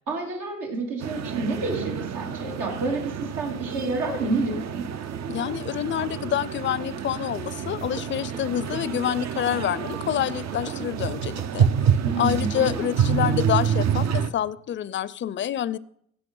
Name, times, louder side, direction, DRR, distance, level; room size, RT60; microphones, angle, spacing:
voice 1, 0.1-4.8 12.0-12.9, right 3 dB, 85° right, -1 dB, 3.0 m, -29 dB
sound 1, 1.0-14.3, right 8 dB, 60° right, 0.7 m, -28 dB
voice 2, 5.3-11.7 12.2-15.8, left 10 dB, 40° left, 20 dB, 0.4 m, -27 dB
sound 2, 8.0-13.2, right 5 dB, 15° right, 0.5 m, -43 dB
16.0 x 5.7 x 5.4 m, 0.69 s
cardioid pair, 85°, 30 cm